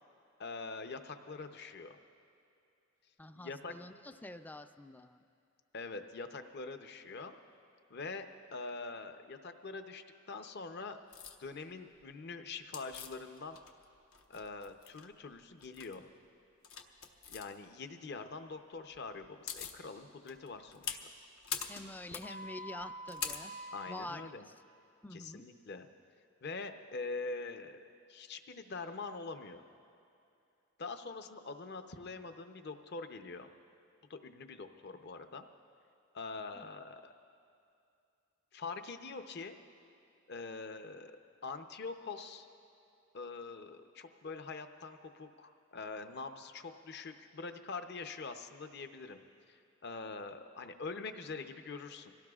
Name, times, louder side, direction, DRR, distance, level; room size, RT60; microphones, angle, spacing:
voice 1, 0.4-2.0 3.3-3.7 5.7-7.4 7.9-11.0 11.4-13.6 14.3-16.1 17.3-21.0 23.7-24.5 25.1-25.9 26.4-27.8 28.1-29.6 30.8-33.5 34.1-35.5 36.1-37.1 38.5-39.6 40.3-41.1 41.4-42.5 43.1-49.2 49.5-52.1, left 4 dB, 55° left, 7 dB, 0.7 m, -44 dB
voice 2, 3.2-5.2 21.7-23.5 23.9-24.3 25.0-25.4 36.6-36.7, left 1 dB, 10° left, 10 dB, 0.3 m, -47 dB
sound 1, 11.1-11.4 12.7-13.8 14.1-15.1 15.6-15.9 16.6-17.4 18.9-19.0 19.2-19.8 20.3-24.0, left 6 dB, 85° left, 0.9 m, -42 dB
25.0 x 17.5 x 2.4 m, 2.5 s
head